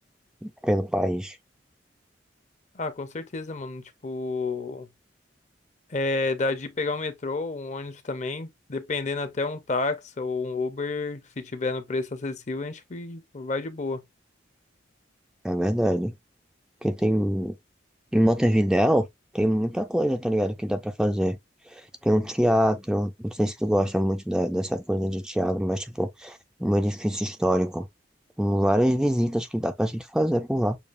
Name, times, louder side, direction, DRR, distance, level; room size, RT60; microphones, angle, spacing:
voice 1, 0.4-1.4 15.4-16.1 16.8-17.5 18.1-19.1 19.3-21.4 21.7-27.9 28.4-30.8, equal, 5° right, 0.4 m, -24 dB
voice 2, 2.7-4.9 5.9-14.0, left 3 dB, 40° left, 0.7 m, -30 dB
6.9 x 2.3 x 2.5 m
head